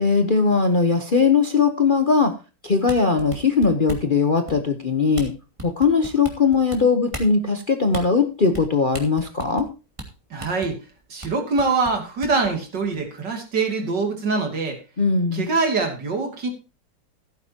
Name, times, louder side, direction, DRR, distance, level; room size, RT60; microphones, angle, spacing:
voice 1, 0.0-2.3 2.6-5.3 5.6-9.7 15.0-15.5, left 4 dB, 35° left, 6 dB, 0.9 m, -20 dB
sound 1, 2.9-4.1 4.5-4.8 5.1-5.3 5.6-6.8 7.1-7.3 7.9-8.0 8.5-8.7 8.9-9.7 10.0-10.1 10.4-10.7 11.2-11.3 11.6-12.5, right 1 dB, 15° right, 2.5 m, -35 dB
voice 2, 10.3-10.8 11.1-14.8 15.3-16.5, right 4 dB, 65° right, 3 dB, 3.3 m, -24 dB
16.0 x 9.5 x 2.9 m, 0.31 s
omnidirectional pair, 2.0 m